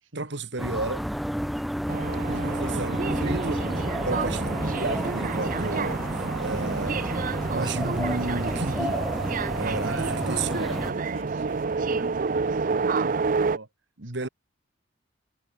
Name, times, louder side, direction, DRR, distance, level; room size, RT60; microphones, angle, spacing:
voice 1, 0.2-1.1 2.3-3.6 4.0-6.1 6.4-7.2 7.5-9.0 9.6-10.0 10.3-10.6 14.0-14.3, right 3 dB, 65° right, 2.0 m, -32 dB
sound 1, 0.6-10.9, equal, ahead, 0.6 m, -31 dB
sound 2, 1.9-13.6, right 4 dB, 45° right, 0.5 m, -29 dB
sound 3, 4.8-12.9, left 3 dB, 85° left, 4.7 m, -57 dB
voice 2, 9.8-13.7 14.0-14.3, right 2 dB, 90° right, 3.3 m, -41 dB
head